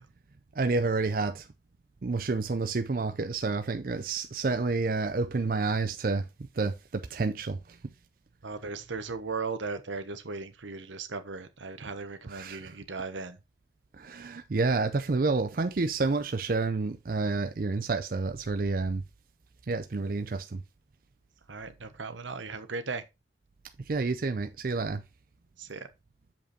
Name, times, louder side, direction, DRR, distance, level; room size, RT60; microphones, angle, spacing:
voice 1, 0.6-1.5 2.0-6.3 6.6-7.6 12.3-12.7 14.0-19.0 19.7-20.6 23.9-25.0, right 3 dB, 50° right, 0.5 m, -29 dB
voice 2, 8.4-13.4 21.5-23.0 25.6-25.9, right 4 dB, 85° right, 1.1 m, -37 dB
7.1 x 5.3 x 4.2 m
head